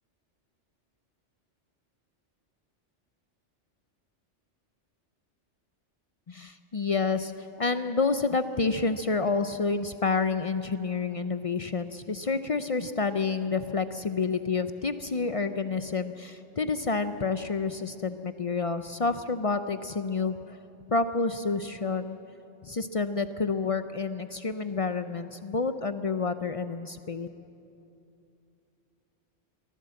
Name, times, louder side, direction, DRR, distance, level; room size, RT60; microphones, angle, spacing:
voice 1, 6.3-20.6 20.9-22.2 22.6-27.3, left 4 dB, 45° left, 10 dB, 0.4 m, -29 dB
23.0 x 15.5 x 7.6 m, 2.7 s
omnidirectional pair, 1.3 m